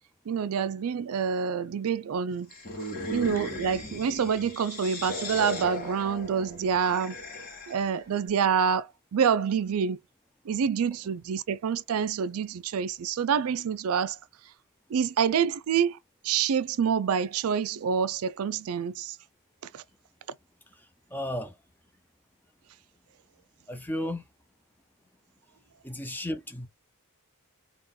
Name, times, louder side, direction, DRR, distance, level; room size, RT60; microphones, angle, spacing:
voice 1, 0.3-2.5 3.1-7.1 7.7-10.0 10.5-14.2 14.9-16.0 16.2-19.2 19.7-19.8, right 7 dB, 80° right, 0.4 m, -27 dB
sound 1, 2.5-8.0, left 1 dB, 40° left, 1.6 m, -37 dB
voice 2, 21.1-21.6 23.7-24.3 25.8-26.7, left 1 dB, 10° left, 0.7 m, -33 dB
3.7 x 2.4 x 3.7 m
head